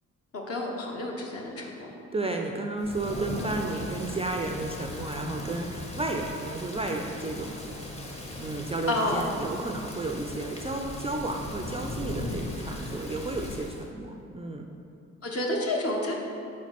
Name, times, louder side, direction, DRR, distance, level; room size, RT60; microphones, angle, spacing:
voice 1, 0.3-1.9 8.9-9.3 15.2-16.2, left 1 dB, 45° left, -1 dB, 1.3 m, -29 dB
voice 2, 2.1-7.6 8.4-14.7, right 2 dB, 20° right, 2 dB, 0.5 m, -32 dB
Thunder / Rain, 2.8-13.9, left 1 dB, 20° left, 1.0 m, -38 dB
4.7 x 4.2 x 5.9 m, 2.7 s
hypercardioid pair, 50°, 34 cm